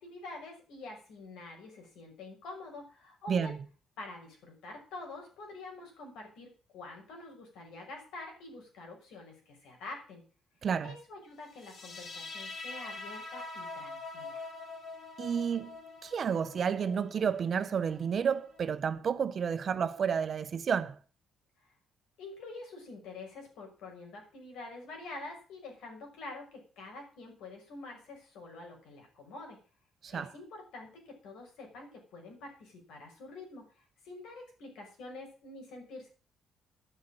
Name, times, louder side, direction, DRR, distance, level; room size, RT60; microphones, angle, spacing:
voice 1, 0.0-3.5 4.0-10.2 10.8-14.5 22.2-29.6 30.1-36.1, left 2 dB, 85° left, 6.0 m, -47 dB
voice 2, 10.6-10.9 15.2-15.8 16.0-21.0 30.0-30.3, right 7 dB, 50° right, 1.0 m, -31 dB
sound 1, 11.6-18.6, left 3 dB, 60° left, 3.0 m, -45 dB
10.5 x 7.8 x 8.9 m
cardioid pair, 90°, 0 cm